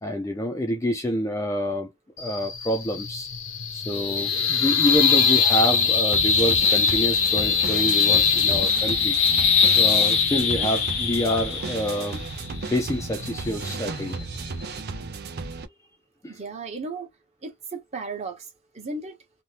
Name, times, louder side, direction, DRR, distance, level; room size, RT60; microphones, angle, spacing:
voice 1, 0.0-1.9 2.2-3.3 3.7-9.2 9.7-12.2 12.7-14.2 16.2-16.3, equal, 15° left, 0.4 m, -27 dB
sound 1, 2.2-14.8, left 6 dB, 60° left, 0.6 m, -22 dB
sound 2, 5.8-15.7, right 4 dB, 50° right, 0.5 m, -35 dB
voice 2, 16.3-17.1 17.4-18.5 18.7-19.2, right 3 dB, 30° right, 0.9 m, -35 dB
2.7 x 2.1 x 3.2 m
head